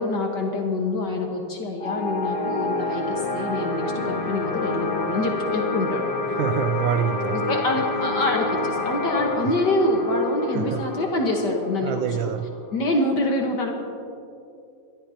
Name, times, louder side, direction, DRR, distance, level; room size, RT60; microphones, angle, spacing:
voice 1, 0.0-6.1 7.3-12.3 12.7-13.7, left 2 dB, 60° left, 1 dB, 2.0 m, -25 dB
sound 1, 1.8-12.9, left 2 dB, 35° left, 1.1 m, -28 dB
voice 2, 6.3-7.4 10.5-10.9 11.8-12.5, right 10 dB, 80° right, 9 dB, 1.3 m, -26 dB
28.0 x 13.5 x 2.9 m, 2.5 s
omnidirectional pair, 2.2 m